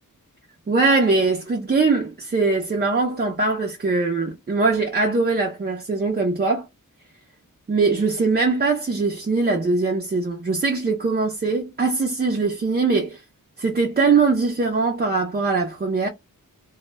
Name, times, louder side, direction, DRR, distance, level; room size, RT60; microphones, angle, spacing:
voice 1, 0.7-6.7 7.7-13.2 13.6-16.1, right 3 dB, 30° right, 0.4 m, -21 dB
2.1 x 2.0 x 3.2 m
wide cardioid pair, 95°, 34 cm